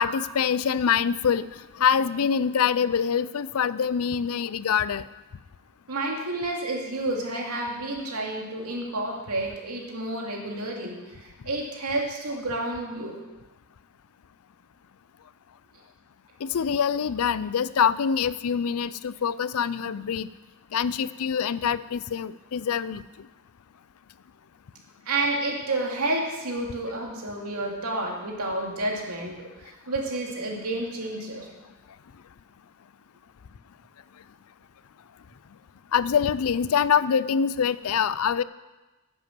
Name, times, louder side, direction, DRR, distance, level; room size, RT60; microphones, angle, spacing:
voice 1, 0.0-1.5 1.8-5.0 16.4-20.3 20.7-23.0 35.9-38.4, left 7 dB, 75° left, 17 dB, 0.4 m, -25 dB
voice 2, 5.9-13.2 25.1-31.5, right 2 dB, 85° right, -1 dB, 2.6 m, -30 dB
10.5 x 8.1 x 7.6 m, 1.1 s
head